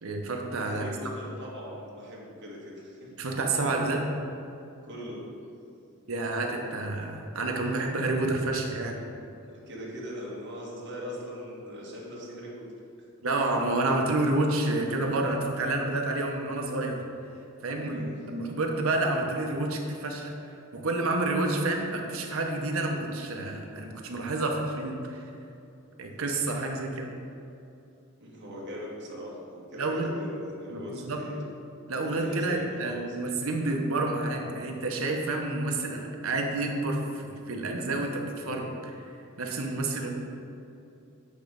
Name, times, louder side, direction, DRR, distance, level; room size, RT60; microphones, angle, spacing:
voice 1, 0.0-0.9 3.2-4.1 6.1-9.0 13.2-17.0 17.6-20.3 20.7-25.2 26.0-27.1 29.8-30.1 30.7-31.3 31.9-38.9 39.4-40.1, right 2 dB, 70° right, 2 dB, 0.9 m, -29 dB
voice 2, 0.6-3.1 4.8-5.2 9.4-12.6 17.8-18.5 28.2-31.4 32.0-33.3, equal, 55° right, -4 dB, 1.5 m, -41 dB
8.3 x 3.2 x 5.1 m, 2.7 s
head